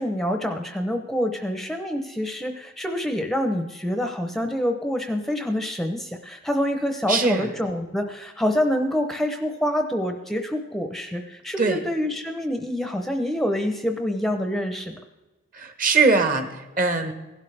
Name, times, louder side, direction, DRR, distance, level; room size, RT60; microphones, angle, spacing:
voice 1, 0.0-15.0, equal, ahead, 5 dB, 0.7 m, -26 dB
voice 2, 7.1-7.5 11.6-11.8 15.5-16.5 16.8-17.1, right 4 dB, 40° right, 7 dB, 1.2 m, -21 dB
16.5 x 12.0 x 3.4 m, 1.1 s
head